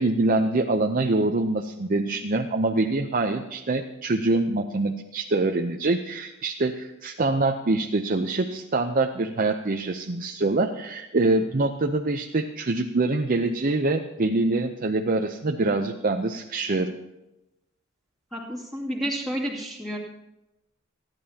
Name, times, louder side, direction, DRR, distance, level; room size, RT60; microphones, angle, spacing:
voice 1, 0.0-16.9, right 2 dB, 45° right, 4 dB, 0.7 m, -25 dB
voice 2, 18.3-20.0, equal, ahead, -5 dB, 2.5 m, -30 dB
29.5 x 10.5 x 2.9 m, 0.95 s
head